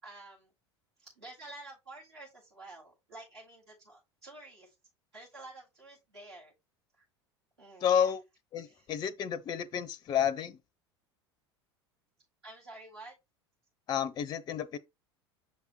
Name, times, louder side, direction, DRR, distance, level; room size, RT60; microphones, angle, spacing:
voice 1, 0.0-0.5 1.0-4.7 5.1-6.5 7.0-7.1 7.6-8.1 8.6-8.9 12.4-13.1, right 2 dB, 75° right, 4.0 m, -50 dB
voice 2, 7.8-8.2 8.5-10.6 13.9-14.8, left 8 dB, 30° left, 0.5 m, -30 dB
6.8 x 4.9 x 3.0 m
figure-of-eight pair, 75°, 14 cm